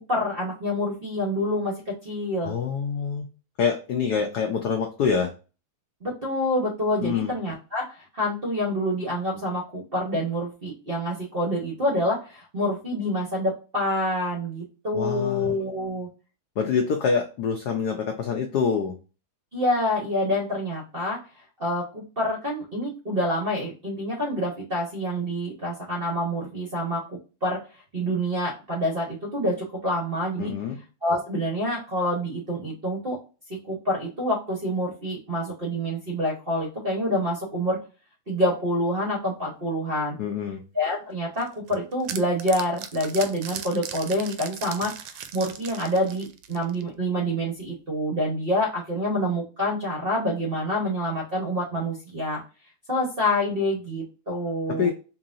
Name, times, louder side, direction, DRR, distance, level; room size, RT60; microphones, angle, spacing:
voice 1, 0.1-2.5 6.0-16.1 19.5-21.2 21.6-27.0 27.4-27.6 27.9-30.5 31.0-33.2 33.5-37.8 38.3-40.2 40.7-52.4 52.9-54.9, equal, 45° right, -1 dB, 0.7 m, -27 dB
voice 2, 2.4-3.3 3.6-5.3 7.0-7.3 14.9-15.6 16.6-18.9 30.4-30.8 40.2-40.6 54.7-54.9, left 6 dB, 75° left, 3 dB, 0.9 m, -26 dB
sound 1, 41.4-46.9, right 9 dB, 75° right, 1.3 m, -38 dB
4.7 x 2.8 x 2.5 m, 0.33 s
omnidirectional pair, 2.4 m